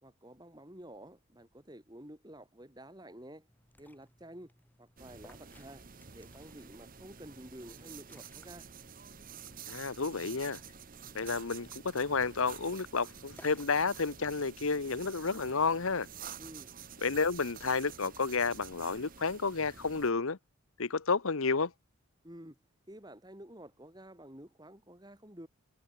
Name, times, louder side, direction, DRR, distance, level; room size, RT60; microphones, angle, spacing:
voice 1, 0.0-3.5 3.8-4.5 4.8-5.8 6.1-8.7 16.4-16.8 22.2-22.6 22.9-25.5, right 1 dB, 20° right, 3.7 m, -50 dB
Liquid, 3.5-13.8, left 1 dB, 10° left, 5.4 m, -63 dB
sound 1, 5.0-20.1, right 7 dB, 40° right, 1.2 m, -49 dB
voice 2, 9.7-10.6 11.1-16.1 17.0-20.4 20.8-21.7, left 4 dB, 75° left, 1.1 m, -31 dB
head